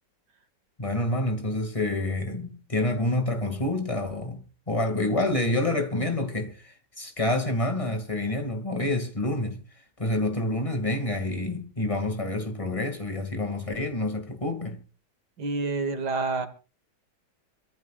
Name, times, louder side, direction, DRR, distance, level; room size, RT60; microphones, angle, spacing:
voice 1, 0.8-9.6 10.0-14.8, left 1 dB, 20° left, 2.4 m, -28 dB
voice 2, 15.4-16.5, right 3 dB, 70° right, 2.4 m, -28 dB
26.0 x 14.5 x 2.5 m
omnidirectional pair, 1.9 m